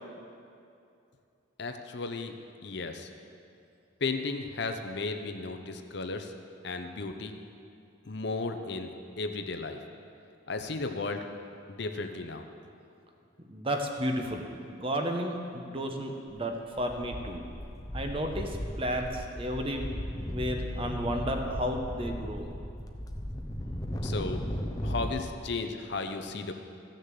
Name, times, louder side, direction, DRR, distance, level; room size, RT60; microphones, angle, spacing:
voice 1, 1.6-2.3 2.6-3.1 4.0-6.3 6.6-7.4 8.1-8.9 9.2-9.8 10.5-11.3 11.7-12.5 24.0-24.4 24.8-26.5, left 3 dB, 55° left, 6 dB, 0.7 m, -34 dB
voice 2, 13.5-17.4 17.9-19.9 20.3-22.5, equal, 25° right, 3 dB, 0.9 m, -32 dB
sound 1, 16.3-16.5 16.8-25.2, equal, 20° left, 0.7 m, -36 dB
15.0 x 6.6 x 7.6 m, 2.6 s
head